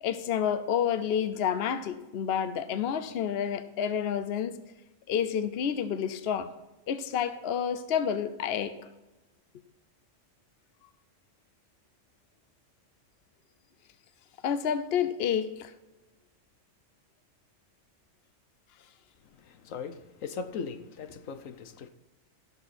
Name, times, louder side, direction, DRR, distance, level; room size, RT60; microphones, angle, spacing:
voice 1, 0.0-4.6 5.1-6.5 6.9-8.7 14.4-15.7, left 8 dB, 55° left, 0.9 m, -29 dB
voice 2, 19.2-21.9, left 5 dB, 90° left, 1.3 m, -39 dB
16.0 x 7.3 x 4.3 m
omnidirectional pair, 1.3 m